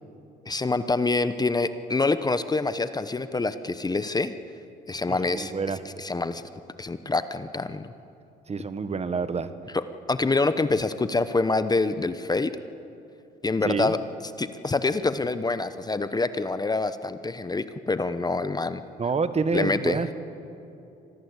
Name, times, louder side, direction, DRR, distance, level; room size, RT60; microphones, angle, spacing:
voice 1, 0.4-4.3 4.9-5.5 6.0-6.4 6.8-7.9 9.7-12.5 13.4-14.0 14.4-18.8 19.5-20.0, left 3 dB, 20° left, 12 dB, 0.9 m, -26 dB
voice 2, 5.1-5.8 8.5-9.5 13.6-13.9 19.0-20.1, right 5 dB, 35° right, 11 dB, 1.5 m, -27 dB
25.5 x 19.0 x 8.2 m, 2.8 s
cardioid pair, 85°, 19 cm